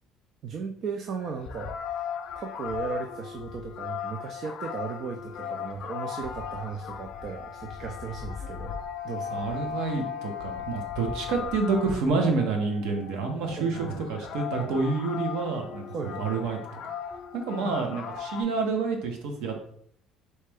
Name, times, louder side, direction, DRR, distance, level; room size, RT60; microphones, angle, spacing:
voice 1, 0.4-1.8 2.4-8.8 9.0-9.5 13.6-13.9 15.9-16.3 17.6-17.8, right 5 dB, 40° right, 5 dB, 0.3 m, -36 dB
sound 1, 1.2-18.4, left 7 dB, 50° left, 0.5 m, -37 dB
voice 2, 9.3-16.8 17.3-19.7, right 4 dB, 85° right, 3 dB, 1.0 m, -28 dB
4.2 x 3.2 x 3.5 m, 0.65 s
cardioid pair, 170°, 0 cm